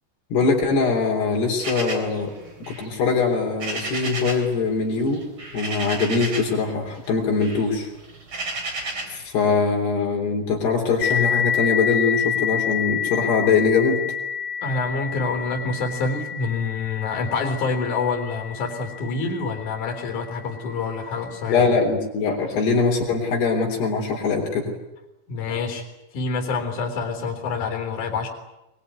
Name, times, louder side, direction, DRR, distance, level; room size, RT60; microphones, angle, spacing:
voice 1, 0.3-2.3 2.7-5.2 5.5-7.9 9.1-14.0 21.5-24.7, left 4 dB, 65° left, 0 dB, 5.5 m, -22 dB
sound 1, 1.6-4.5 4.8-6.6 7.0-9.2, right 2 dB, 30° right, 3.9 m, -33 dB
sound 2, 11.0-20.2, left 8 dB, 85° left, 1.4 m, -28 dB
voice 2, 14.6-21.6 25.3-25.9 26.1-28.3, left 4 dB, 45° left, 2 dB, 5.1 m, -27 dB
22.0 x 22.0 x 9.7 m, 0.96 s
omnidirectional pair, 5.1 m